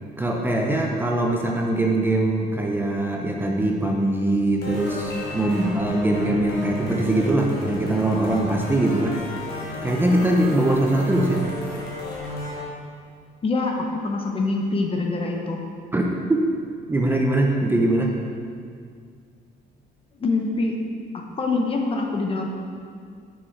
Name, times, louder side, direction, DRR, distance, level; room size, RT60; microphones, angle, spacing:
voice 1, 0.2-9.2 9.8-11.5 15.9-16.0 16.3-16.4 16.9-18.2, right 1 dB, 10° right, 0 dB, 0.6 m, -22 dB
sound 1, 4.6-12.6, left 2 dB, 70° left, 1.8 m, -33 dB
Piano, 5.1-6.2, left 2 dB, 85° left, 1.8 m, -42 dB
voice 2, 13.4-15.6 20.2-20.8 21.4-22.5, left 3 dB, 35° left, 2 dB, 0.9 m, -24 dB
6.2 x 6.1 x 4.5 m, 2.2 s
cardioid pair, 110°, 17 cm